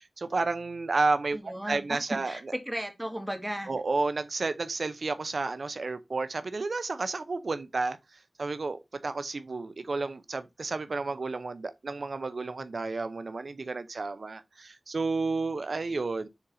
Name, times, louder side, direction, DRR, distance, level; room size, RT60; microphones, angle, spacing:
voice 1, 0.0-2.5 3.7-16.3, right 3 dB, 80° right, 0.6 m, -31 dB
voice 2, 1.4-2.0 2.3-3.7, equal, 10° right, 2.2 m, -35 dB
7.2 x 3.9 x 3.8 m
wide cardioid pair, 50°, 0 cm